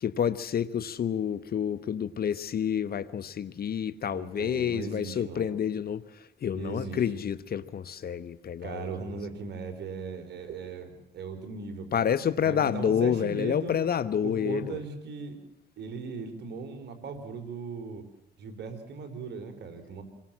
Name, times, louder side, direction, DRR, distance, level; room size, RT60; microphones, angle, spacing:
voice 1, 0.0-6.0 6.4-8.9 11.9-14.8, left 8 dB, 60° left, 1.1 m, -29 dB
voice 2, 4.1-5.5 6.5-7.1 8.6-12.0 12.4-13.7 14.2-15.4 15.8-18.0 18.4-20.0, right 4 dB, 75° right, 4.3 m, -38 dB
27.5 x 22.0 x 7.5 m
supercardioid pair, 65°, 18 cm